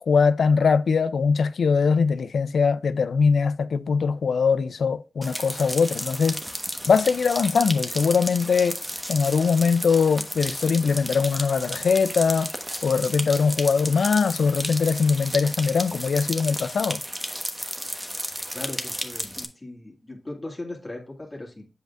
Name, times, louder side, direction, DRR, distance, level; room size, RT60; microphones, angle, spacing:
voice 1, 0.0-6.4 6.9-8.8 9.1-12.5 12.8-17.0, left 5 dB, 90° left, 0.4 m, -21 dB
sound 1, 5.2-19.5, equal, 10° right, 1.2 m, -33 dB
voice 2, 18.5-21.7, left 2 dB, 30° left, 2.1 m, -38 dB
7.8 x 5.2 x 2.4 m
cardioid pair, 50°, 0 cm